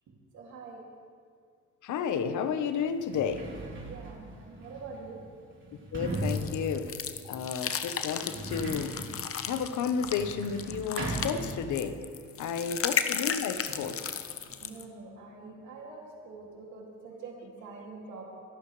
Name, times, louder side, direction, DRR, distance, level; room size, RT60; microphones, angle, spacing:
voice 1, 0.3-0.8 3.8-5.2 12.6-12.7 13.7-13.9 14.4-18.2, right 4 dB, 75° right, -2 dB, 2.6 m, -45 dB
voice 2, 1.8-3.5 5.9-6.9 7.2-8.9 9.4-12.0 12.4-14.0, left 7 dB, 75° left, 10 dB, 1.0 m, -32 dB
Sliding door, 2.2-2.3 2.9-12.1 12.3-13.2, right 1 dB, 40° right, 3.4 m, -39 dB
sound 1, 6.1-14.8, left 8 dB, 50° left, 0.8 m, -35 dB
24.5 x 12.0 x 3.3 m, 2.1 s
cardioid pair, 90°, 30 cm